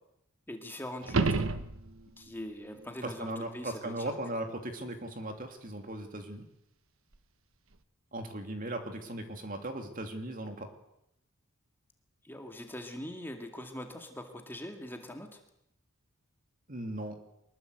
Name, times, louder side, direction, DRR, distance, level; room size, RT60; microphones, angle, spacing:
voice 1, 0.5-1.7 2.2-4.1 12.2-15.4, left 1 dB, 10° left, 4 dB, 2.2 m, -42 dB
sound 1, 1.0-2.3 7.1-7.2, right 3 dB, 65° right, 1.2 m, -29 dB
voice 2, 3.0-6.4 8.1-10.7 16.7-17.2, right 1 dB, 40° right, 5 dB, 2.9 m, -38 dB
24.0 x 21.0 x 8.0 m, 0.79 s
head